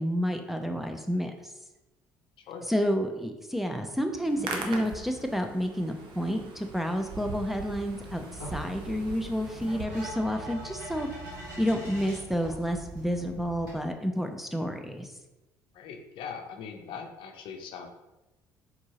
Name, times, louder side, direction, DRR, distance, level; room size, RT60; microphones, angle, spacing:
voice 1, 0.0-1.5 2.7-11.1 11.6-15.1, equal, ahead, 4 dB, 0.6 m, -30 dB
Hands, 4.2-9.8, right 4 dB, 55° right, 0.8 m, -40 dB
sound 1, 7.9-13.7, equal, 85° right, 1.5 m, -42 dB
voice 2, 15.7-17.9, left 6 dB, 60° left, 5 dB, 0.6 m, -41 dB
4.4 x 4.0 x 2.9 m, 1.0 s
hypercardioid pair, 55°, 10 cm